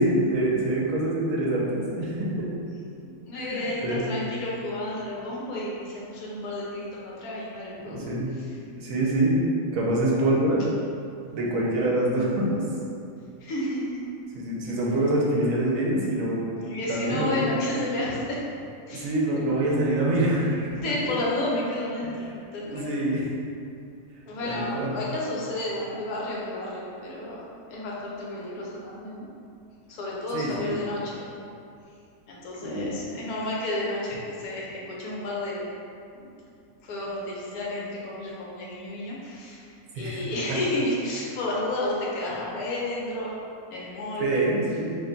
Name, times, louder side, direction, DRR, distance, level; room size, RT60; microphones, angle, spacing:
voice 1, 0.0-2.3 3.3-4.0 7.9-8.3 8.8-9.4 9.7-10.7 11.3-12.6 14.3-16.4 16.9-17.6 18.9-21.1 22.6-23.2 24.4-24.9 30.3-30.8 32.6-32.9 39.9-40.2 44.2-45.0, right 1 dB, 70° right, -4 dB, 1.0 m, -25 dB
voice 2, 3.0-8.0 13.4-14.0 16.6-18.4 18.9-19.1 20.8-22.9 24.3-27.4 27.7-29.3 29.9-31.2 32.3-35.6 36.1-36.3 36.8-39.7 40.0-43.3 43.7-44.4, left 1 dB, 85° left, -5 dB, 1.2 m, -31 dB
2.9 x 2.2 x 3.8 m, 2.5 s
omnidirectional pair, 1.5 m